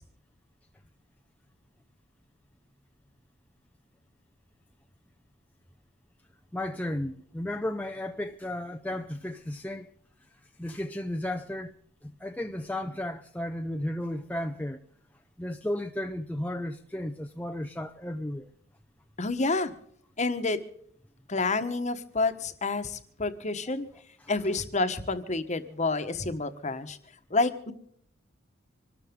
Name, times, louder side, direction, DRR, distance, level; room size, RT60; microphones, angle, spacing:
voice 1, 6.5-9.9 10.3-11.7 12.0-14.8 15.4-18.5 24.2-24.3, left 1 dB, 5° left, 0.6 m, -34 dB
voice 2, 19.2-19.7 20.2-20.6 21.3-23.9 24.3-27.0 27.3-27.7, left 3 dB, 35° left, 1.3 m, -29 dB
25.5 x 13.0 x 3.7 m
head